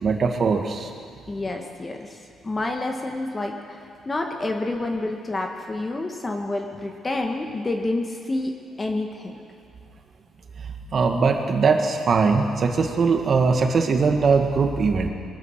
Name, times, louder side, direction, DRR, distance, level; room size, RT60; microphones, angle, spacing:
voice 1, 0.0-0.9 10.9-15.1, right 4 dB, 50° right, 4 dB, 1.7 m, -20 dB
voice 2, 1.3-3.8 4.0-8.5 8.8-9.4, left 2 dB, 25° left, 3 dB, 1.5 m, -28 dB
22.0 x 9.8 x 6.5 m, 2.4 s
cardioid pair, 90°, 0 cm